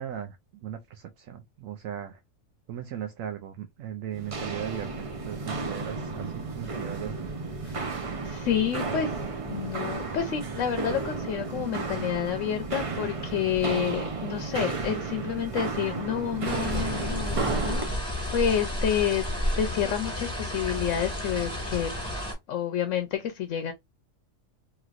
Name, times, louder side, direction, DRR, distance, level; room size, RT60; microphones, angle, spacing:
voice 1, 0.0-2.2 2.7-7.3, right 9 dB, 80° right, 1.0 m, -37 dB
Walk footsteps, 4.1-17.9, right 4 dB, 40° right, 0.4 m, -33 dB
voice 2, 7.6-19.2 19.6-21.9 22.5-23.7, left 9 dB, 75° left, 0.9 m, -29 dB
sound 1, 16.4-22.3, left 1 dB, 5° left, 1.5 m, -31 dB
3.0 x 2.9 x 2.4 m
omnidirectional pair, 1.4 m